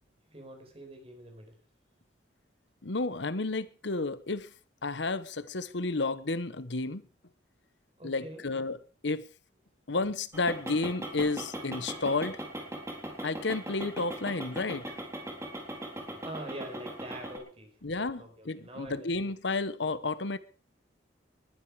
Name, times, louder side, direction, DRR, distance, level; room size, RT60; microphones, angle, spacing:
voice 1, 0.3-1.5 8.0-8.4 16.2-19.1, right 1 dB, 30° right, 4.9 m, -44 dB
voice 2, 2.8-4.5 4.8-7.0 8.0-9.3 9.9-12.4 13.2-15.0 17.8-20.4, left 3 dB, 75° left, 1.1 m, -31 dB
sound 1, 10.3-17.4, right 1 dB, 15° right, 3.8 m, -40 dB
21.0 x 11.0 x 4.9 m
head